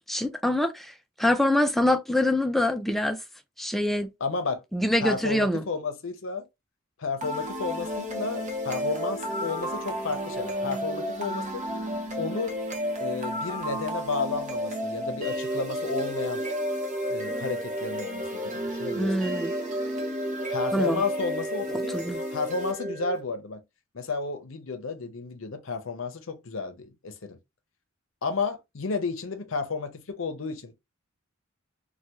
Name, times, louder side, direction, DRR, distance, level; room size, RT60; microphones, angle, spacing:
voice 1, 0.1-3.2 3.6-4.1 4.7-5.6 18.9-19.5 20.7-21.0 21.7-22.2, left 1 dB, ahead, 0.3 m, -25 dB
voice 2, 4.2-4.6 5.0-6.5 7.0-11.6 12.2-12.5 13.0-16.4 17.1-19.1 20.5-22.0 22.3-23.6 23.9-27.4 28.2-30.7, left 4 dB, 70° left, 0.7 m, -32 dB
sound 1, 7.2-23.2, equal, 35° right, 0.7 m, -32 dB
3.4 x 2.3 x 2.9 m
head